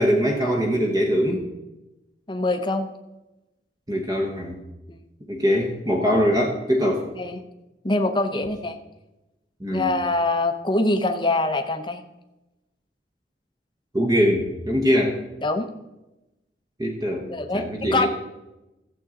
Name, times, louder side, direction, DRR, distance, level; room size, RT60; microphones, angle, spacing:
voice 1, 0.0-1.5 3.9-4.6 5.3-7.1 8.3-8.5 9.6-10.0 13.9-15.2 16.8-17.3 17.5-18.1, equal, 20° right, -1 dB, 1.1 m, -22 dB
voice 2, 2.3-2.9 4.9-5.0 7.2-7.4 7.8-8.8 9.7-12.0 15.4-15.7 17.2-18.1, left 2 dB, 25° left, 7 dB, 0.8 m, -24 dB
15.0 x 7.6 x 3.8 m, 0.98 s
head